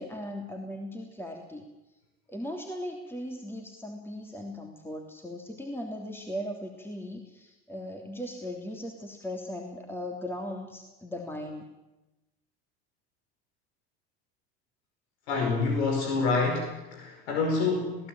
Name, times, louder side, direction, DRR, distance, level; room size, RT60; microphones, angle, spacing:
voice 1, 0.0-1.7 2.3-11.7, left 1 dB, 5° left, 2 dB, 3.2 m, -38 dB
voice 2, 15.3-18.1, left 4 dB, 80° left, 2 dB, 5.1 m, -27 dB
20.5 x 17.0 x 9.1 m, 1.0 s
hypercardioid pair, 85°, 32 cm